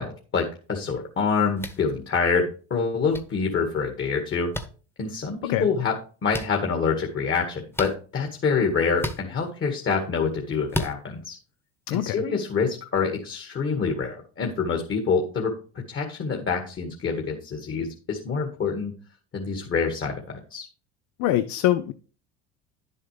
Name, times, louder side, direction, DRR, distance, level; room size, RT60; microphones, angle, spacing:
voice 1, 0.0-4.5 5.0-11.4 11.9-15.6 15.9-18.9 19.3-20.7, left 5 dB, 35° left, 3 dB, 2.1 m, -26 dB
sound 1, 1.6-1.8 3.1-3.2 4.5-4.7 6.3-6.5 7.7-8.0 9.0-9.2 10.7-10.9, left 1 dB, 5° left, 1.3 m, -30 dB
voice 2, 21.2-21.9, left 13 dB, 60° left, 12 dB, 0.7 m, -23 dB
10.5 x 7.7 x 3.3 m, 0.38 s
hypercardioid pair, 80°, 33 cm